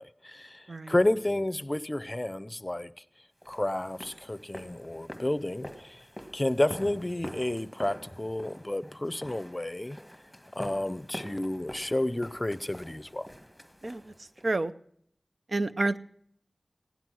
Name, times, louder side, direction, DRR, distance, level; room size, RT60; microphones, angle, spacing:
voice 1, 0.0-2.9 3.5-6.0 6.3-10.0 10.5-13.3, left 1 dB, 25° left, 0.6 m, -31 dB
sound 1, 3.4-14.5, equal, ahead, 1.6 m, -46 dB
voice 2, 15.5-16.0, right 2 dB, 70° right, 0.6 m, -28 dB
16.5 x 11.0 x 6.2 m
wide cardioid pair, 55°, 0 cm